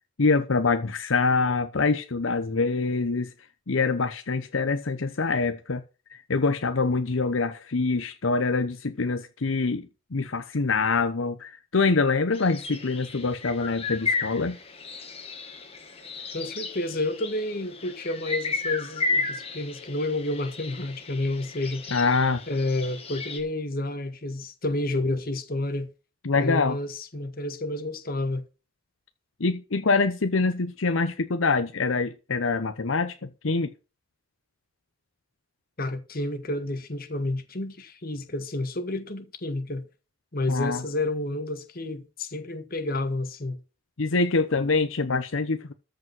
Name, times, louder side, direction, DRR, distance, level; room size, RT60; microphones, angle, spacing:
voice 1, 0.2-3.3 3.7-5.8 6.1-9.9 10.1-14.6 21.9-22.4 26.2-26.8 29.4-33.7 40.5-40.8 44.0-45.7, left 4 dB, 75° left, 0.9 m, -25 dB
sound 1, 12.3-23.4, left 4 dB, 30° left, 2.0 m, -34 dB
voice 2, 16.3-21.9 22.5-25.9 26.3-28.4 35.8-39.8 40.3-43.6, left 2 dB, 45° left, 1.7 m, -30 dB
13.5 x 5.2 x 7.5 m
head